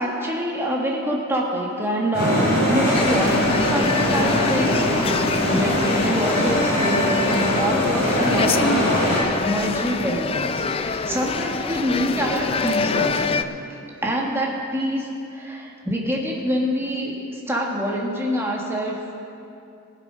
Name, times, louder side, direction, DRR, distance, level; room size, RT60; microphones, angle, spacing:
voice 1, 0.0-5.3 5.5-13.5 14.0-19.1, equal, 10° right, -2 dB, 1.6 m, -26 dB
sound 1, 2.1-9.2, equal, 50° left, 3.5 m, -22 dB
sound 2, 2.9-13.4, left 4 dB, 25° left, 0.3 m, -25 dB
20.0 x 7.4 x 5.5 m, 2.6 s
head